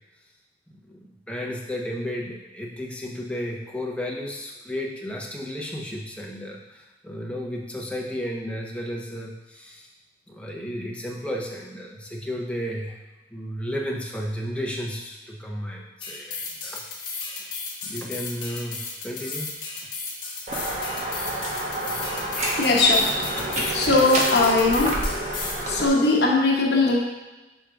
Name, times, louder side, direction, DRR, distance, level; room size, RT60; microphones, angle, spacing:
voice 1, 0.7-9.9 10.3-13.0 13.3-17.5 17.8-19.6 19.8-19.9, equal, 5° left, -1 dB, 0.7 m, -33 dB
sound 1, 16.0-25.6, left 4 dB, 30° left, 1.1 m, -35 dB
sound 2, 20.5-25.9, right 1 dB, 40° right, 1.1 m, -29 dB
voice 2, 22.6-23.1 23.7-25.0 25.3-27.0, left 2 dB, 70° left, -1 dB, 1.0 m, -20 dB
6.2 x 4.7 x 3.7 m, 1.1 s
head